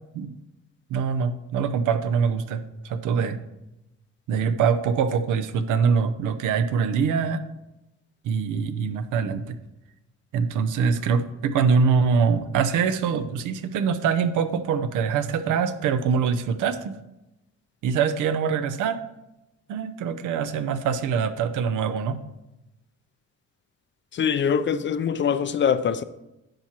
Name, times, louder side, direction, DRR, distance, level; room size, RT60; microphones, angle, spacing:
voice 1, 0.9-3.4 4.3-7.4 8.2-9.6 10.3-16.9 17.8-19.0 19.7-22.2, right 6 dB, 85° right, 0.7 m, -24 dB
voice 2, 24.1-26.0, left 7 dB, 40° left, 0.4 m, -23 dB
10.5 x 6.0 x 2.9 m
cardioid pair, 90°, 30 cm